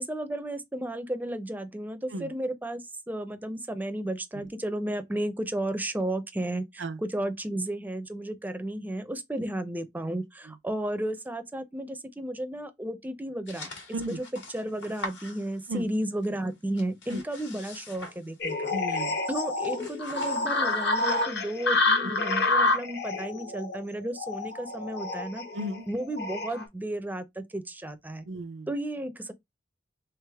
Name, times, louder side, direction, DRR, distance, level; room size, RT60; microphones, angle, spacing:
voice 1, 0.0-13.7 14.1-14.3 14.5-18.7 19.3-25.5 25.9-28.2 28.7-29.3, right 1 dB, 10° right, 0.5 m, -33 dB
sound 1, 13.5-16.0 16.2-18.7 19.0-19.2 19.5-20.9, left 2 dB, 80° left, 1.6 m, -44 dB
sound 2, 18.4-26.6, left 3 dB, 65° left, 1.0 m, -28 dB
voice 2, 18.7-19.1 25.5-25.8 28.3-28.7, right 1 dB, 75° right, 0.6 m, -34 dB
3.4 x 3.4 x 3.4 m
head